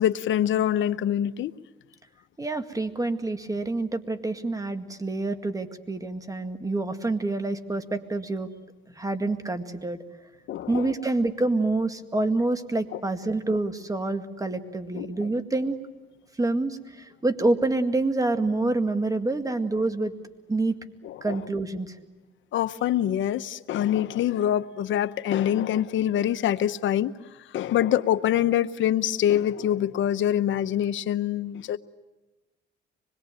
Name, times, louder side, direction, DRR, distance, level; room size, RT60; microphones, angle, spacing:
voice 1, 0.0-1.5 10.5-10.9 12.9-13.0 14.9-15.1 21.0-21.4 22.5-27.1 27.4-31.8, left 11 dB, 75° left, 12 dB, 0.9 m, -25 dB
voice 2, 2.4-8.5 9.0-10.0 10.7-15.8 16.4-20.1 20.5-20.8 21.2-22.0, right 2 dB, 15° right, 8 dB, 2.0 m, -27 dB
25.5 x 21.5 x 9.1 m, 1.2 s
cardioid pair, 90°, 20 cm